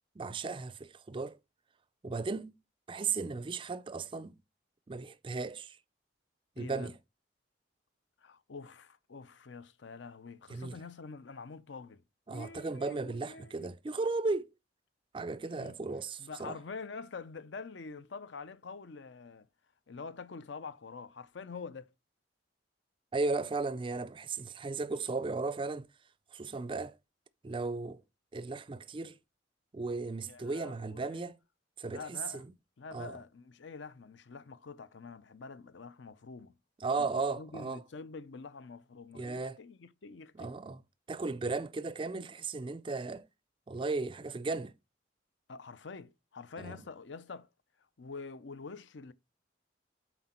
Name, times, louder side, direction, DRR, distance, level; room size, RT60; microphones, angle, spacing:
voice 1, 0.2-1.4 2.0-2.6 2.9-4.3 4.9-5.8 6.6-6.9 10.5-10.8 12.3-14.5 15.1-16.6 23.1-25.9 26.3-27.0 27.4-28.0 28.3-29.1 29.7-31.4 31.8-32.5 32.9-33.1 36.8-37.8 39.1-39.6 40.3-40.8 41.1-43.3 43.7-44.7 46.6-46.8, right 3 dB, 25° right, 0.4 m, -35 dB
voice 2, 6.6-6.9 8.2-12.0 12.3-13.7 15.6-15.7 16.2-19.5 19.9-21.9 30.2-31.3 31.9-32.4 32.8-36.6 37.0-40.5 45.5-47.5 48.0-49.1, left 4 dB, 70° left, 0.6 m, -46 dB
7.8 x 4.5 x 4.3 m
head